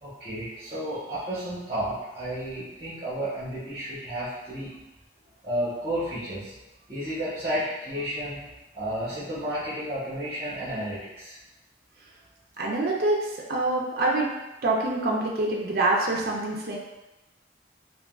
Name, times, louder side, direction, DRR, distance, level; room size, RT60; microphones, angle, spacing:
voice 1, 0.0-4.7 5.4-6.5 6.9-11.3, equal, 30° right, -11 dB, 0.9 m, -32 dB
voice 2, 12.6-14.3 14.6-16.8, right 2 dB, 55° right, -3 dB, 0.4 m, -25 dB
3.5 x 2.2 x 2.3 m, 1.0 s
head